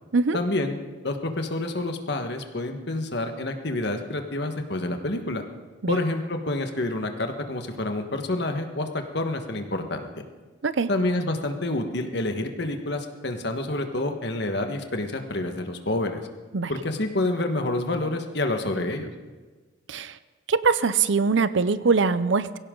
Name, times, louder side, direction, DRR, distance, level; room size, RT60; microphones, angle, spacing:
voice 1, 0.3-0.8 1.0-5.4 5.9-10.1 10.9-16.2 16.7-19.1, left 2 dB, 60° left, 5 dB, 1.5 m, -28 dB
voice 2, 20.5-22.6, right 4 dB, 70° right, 15 dB, 0.6 m, -22 dB
22.5 x 16.0 x 3.9 m, 1.3 s
head